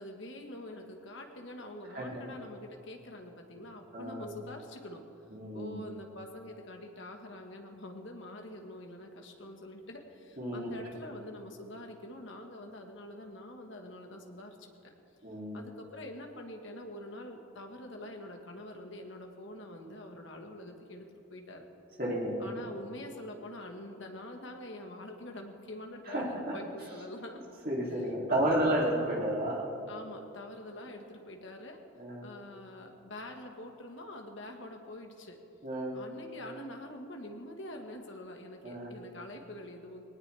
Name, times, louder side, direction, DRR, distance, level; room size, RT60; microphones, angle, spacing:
voice 1, 0.0-5.1 5.5-14.9 15.5-21.7 22.4-27.4 28.3-28.9 29.9-31.8 32.2-35.4 35.9-40.0, left 1 dB, 60° left, 3 dB, 1.6 m, -45 dB
voice 2, 1.9-2.3 3.9-4.3 5.3-5.9 10.4-10.9 15.2-15.6 22.0-22.5 26.1-26.6 27.6-29.7 32.0-32.3 35.6-36.0 38.6-38.9, right 1 dB, 45° right, -4 dB, 3.1 m, -32 dB
20.5 x 18.5 x 3.5 m, 2.9 s
head